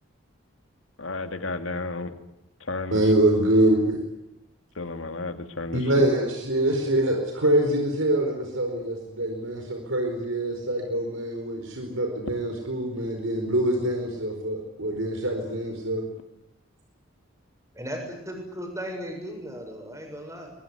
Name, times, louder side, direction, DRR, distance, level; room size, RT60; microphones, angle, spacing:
voice 1, 1.0-2.1 2.7-3.0 4.8-5.8, left 3 dB, 75° left, 8 dB, 2.4 m, -32 dB
voice 2, 2.9-4.0 5.7-16.0, right 1 dB, 75° right, 3 dB, 4.7 m, -24 dB
voice 3, 17.7-20.5, equal, 15° right, 2 dB, 7.3 m, -36 dB
23.5 x 22.0 x 9.7 m, 0.83 s
head